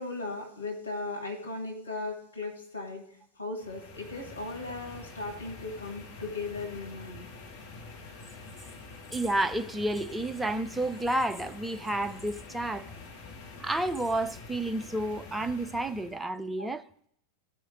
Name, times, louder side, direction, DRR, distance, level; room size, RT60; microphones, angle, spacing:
voice 1, 0.0-3.0 3.4-7.3 16.6-16.7, left 3 dB, 75° left, 2.2 m, -37 dB
sound 1, 3.6-16.2, left 3 dB, 40° left, 1.3 m, -46 dB
voice 2, 9.1-12.9 13.6-16.8, right 1 dB, 5° right, 0.5 m, -30 dB
15.0 x 5.1 x 3.8 m
figure-of-eight pair, 90°, 0 cm